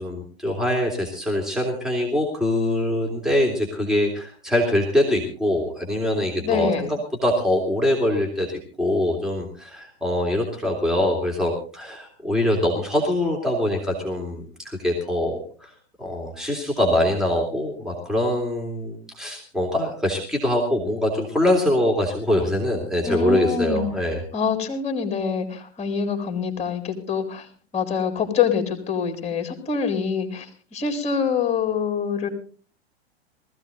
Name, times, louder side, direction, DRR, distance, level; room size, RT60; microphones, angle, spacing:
voice 1, 0.0-15.7 16.0-24.2, left 1 dB, ahead, 0 dB, 3.2 m, -23 dB
voice 2, 6.4-6.9 23.0-23.8 24.3-27.5 27.7-32.3, left 6 dB, 20° left, 4 dB, 4.0 m, -25 dB
19.5 x 15.0 x 4.0 m, 0.41 s
figure-of-eight pair, 100°, 33 cm